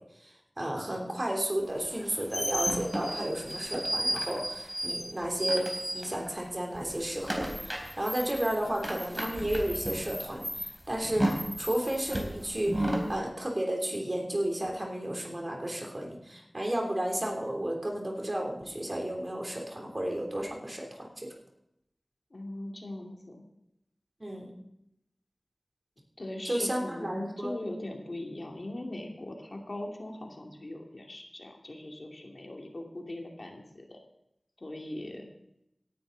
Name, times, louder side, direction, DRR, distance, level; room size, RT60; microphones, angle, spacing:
voice 1, 0.6-5.7 5.9-21.3 24.2-24.5 26.4-27.5, right 1 dB, 35° right, 1 dB, 3.2 m, -33 dB
sound 1, 1.9-6.5 6.7-13.1, equal, 10° right, 3.5 m, -33 dB
voice 2, 22.3-23.4 26.2-34.0 34.6-35.3, left 1 dB, 55° left, 1 dB, 2.5 m, -40 dB
17.5 x 11.0 x 4.0 m, 0.83 s
wide cardioid pair, 60°, 0 cm